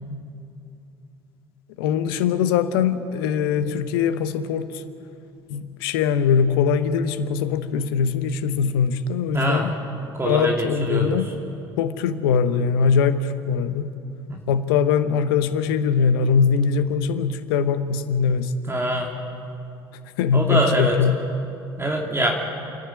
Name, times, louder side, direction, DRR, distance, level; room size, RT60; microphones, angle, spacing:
voice 1, 1.8-4.8 5.5-9.7 10.2-11.3 11.8-13.9 14.5-18.5 20.2-21.2, left 6 dB, 75° left, 12 dB, 1.0 m, -22 dB
voice 2, 9.3-9.7 10.1-11.2 14.3-14.4 18.7-19.1 20.3-20.9 21.8-22.4, right 1 dB, 20° right, 0 dB, 2.8 m, -23 dB
29.0 x 10.0 x 9.5 m, 2.7 s
hypercardioid pair, 60°, 12 cm